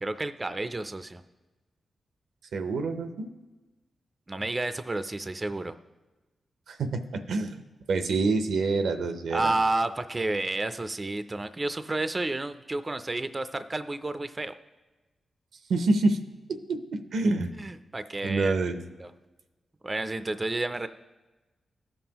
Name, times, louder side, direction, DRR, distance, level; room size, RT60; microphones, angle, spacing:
voice 1, 0.0-1.2 4.3-5.8 9.3-14.5 17.6-18.5 19.0-19.1 19.8-20.9, right 2 dB, 30° right, 11 dB, 0.4 m, -30 dB
voice 2, 2.5-3.3 6.7-7.6 7.9-9.5 15.7-16.2 16.5-17.5 18.2-18.8, right 3 dB, 85° right, 8 dB, 0.6 m, -27 dB
15.0 x 5.4 x 2.9 m, 1.1 s
cardioid pair, 60°, 0 cm